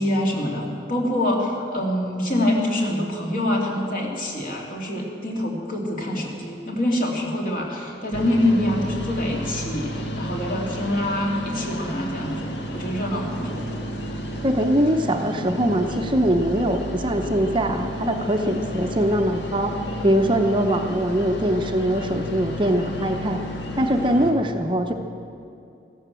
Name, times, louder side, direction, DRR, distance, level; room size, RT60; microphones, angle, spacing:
voice 1, 0.0-13.7, left 1 dB, 45° left, -1 dB, 2.7 m, -25 dB
sound 1, 8.1-24.3, equal, 70° left, 1.7 m, -32 dB
voice 2, 14.4-19.7 20.0-23.4 23.8-24.9, right 1 dB, 25° right, 5 dB, 0.7 m, -22 dB
15.5 x 12.0 x 7.5 m, 2.6 s
head